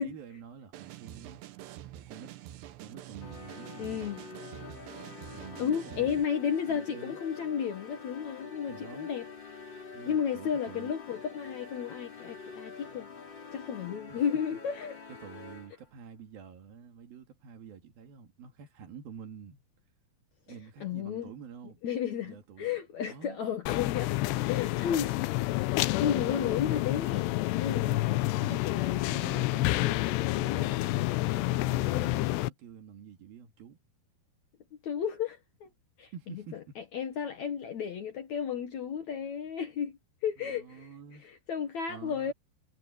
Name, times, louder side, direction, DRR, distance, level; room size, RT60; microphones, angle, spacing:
voice 1, 0.0-1.4 1.9-2.3 2.8-4.1 5.3-6.2 6.7-7.2 8.7-9.1 9.9-10.9 14.1-14.2 15.2-19.6 20.5-21.8 22.3-22.7 23.1-23.4 27.7-28.6 28.9-33.8 36.1-36.8 40.4-41.3 41.9-42.3, right 7 dB, 65° right, 3.8 m, -48 dB
sound 1, 0.7-6.3, right 13 dB, 85° right, 3.3 m, -46 dB
sound 2, 3.2-15.9, left 5 dB, 30° left, 3.7 m, -46 dB
voice 2, 3.8-4.2 5.6-9.3 10.1-13.1 13.5-15.0 20.8-21.3 21.8-24.2 24.4-25.2 25.6-29.1 34.8-35.7 36.0-36.4 36.8-40.9 41.2-42.3, left 8 dB, 60° left, 2.1 m, -33 dB
sound 3, 23.7-32.5, left 19 dB, 85° left, 2.8 m, -29 dB
omnidirectional pair, 4.7 m